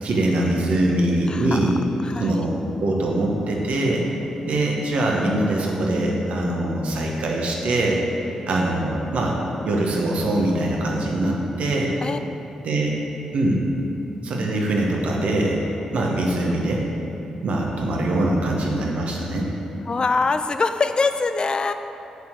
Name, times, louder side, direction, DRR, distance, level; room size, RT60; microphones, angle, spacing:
voice 1, 0.0-1.8 2.2-4.1 4.4-8.0 8.5-9.4 9.6-11.9 12.6-13.0 13.3-13.7 14.2-15.6 15.9-16.9 17.4-19.5, right 1 dB, 70° right, -1 dB, 1.2 m, -23 dB
voice 2, 1.3-1.7 2.0-2.5 12.0-12.2 19.9-21.7, left 4 dB, 40° left, 9 dB, 0.5 m, -23 dB
6.7 x 4.5 x 6.7 m, 2.9 s
supercardioid pair, 45°, 2 cm